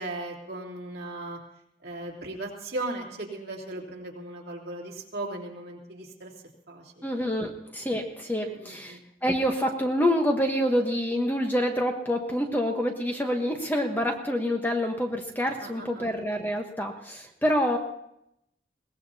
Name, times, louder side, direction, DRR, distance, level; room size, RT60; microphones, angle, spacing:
voice 1, 0.0-1.4 1.8-6.3 6.7-7.1 8.5-9.0 15.6-16.1, right 2 dB, 55° right, -2 dB, 3.0 m, -37 dB
voice 2, 7.0-17.8, equal, 10° left, 2 dB, 1.1 m, -27 dB
22.0 x 18.0 x 2.8 m, 0.79 s
head